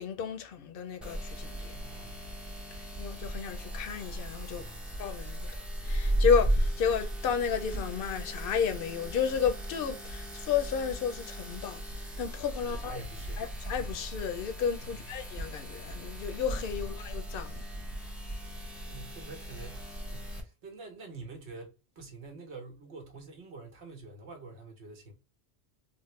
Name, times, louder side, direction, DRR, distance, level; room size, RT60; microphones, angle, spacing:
voice 1, 0.0-1.8 2.7-4.6 5.0-13.0 13.4-17.6, left 7 dB, 65° left, 0.7 m, -32 dB
sound 1, 1.0-20.4, right 1 dB, ahead, 0.5 m, -36 dB
voice 2, 1.7-2.2 4.5-4.9 12.6-13.4 14.8-15.1 18.9-25.1, right 4 dB, 80° right, 1.2 m, -47 dB
3.5 x 2.0 x 3.1 m
omnidirectional pair, 1.1 m